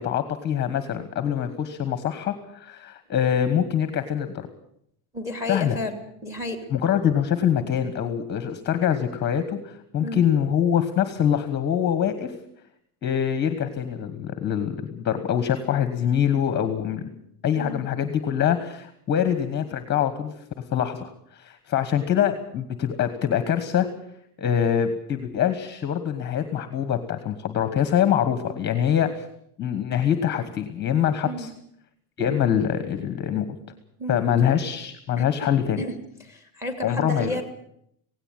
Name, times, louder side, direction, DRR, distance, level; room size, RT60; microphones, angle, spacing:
voice 1, 0.0-4.5 5.5-5.8 6.7-12.3 13.0-17.0 17.4-20.3 20.7-23.9 24.4-29.2 29.6-31.5 32.2-33.4 34.1-35.8 36.8-37.4, left 9 dB, 25° left, 10 dB, 1.3 m, -24 dB
voice 2, 5.1-6.7 10.0-10.2 17.6-17.8 31.2-31.5 34.0-34.2 35.2-35.3 35.8-36.0 36.3-37.4, left 1 dB, 5° right, 7 dB, 2.9 m, -32 dB
17.0 x 17.0 x 8.9 m, 0.71 s
cardioid pair, 170°, 42 cm